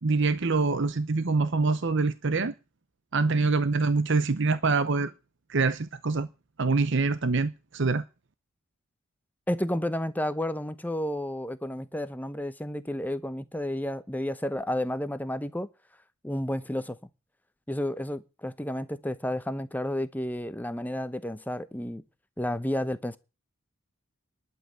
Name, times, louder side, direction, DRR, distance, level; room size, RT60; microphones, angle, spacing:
voice 1, 0.0-2.5 3.1-5.1 5.5-6.3 6.6-8.0, right 3 dB, 55° right, 0.8 m, -25 dB
voice 2, 9.5-15.7 16.2-17.0 17.7-22.0 22.4-23.2, left 1 dB, 10° left, 0.8 m, -31 dB
11.5 x 7.6 x 9.0 m
head